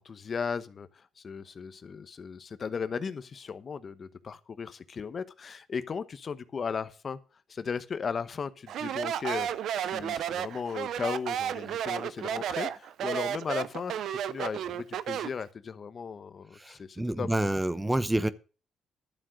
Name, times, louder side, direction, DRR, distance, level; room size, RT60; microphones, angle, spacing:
voice 1, 0.0-7.2 7.5-9.5 9.8-13.9 14.3-17.3, left 6 dB, 45° left, 1.0 m, -36 dB
Speech, 8.7-15.4, right 10 dB, 75° right, 0.7 m, -32 dB
voice 2, 16.5-18.3, right 1 dB, 10° right, 0.8 m, -28 dB
11.5 x 7.7 x 6.3 m
cardioid pair, 90°, 0 cm